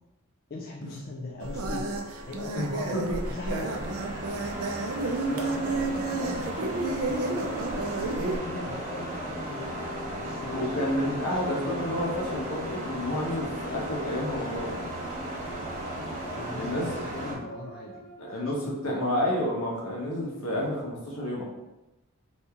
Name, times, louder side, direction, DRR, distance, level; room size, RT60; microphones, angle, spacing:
voice 1, 0.5-1.9 2.3-3.7 5.3-9.7 10.1-10.8 11.2-11.4 16.2-19.0, left 2 dB, 40° left, -3 dB, 0.3 m, -40 dB
sound 1, 1.4-8.4, right 3 dB, 75° right, 0.4 m, -31 dB
sound 2, 2.3-17.4, right 1 dB, 35° right, 0.8 m, -36 dB
sound 3, 5.1-18.5, left 4 dB, 10° left, 1.4 m, -47 dB
voice 2, 10.5-14.7 16.5-17.1 18.2-18.6 18.8-21.4, left 1 dB, 80° left, -3 dB, 1.0 m, -30 dB
2.8 x 2.7 x 3.5 m, 0.99 s
head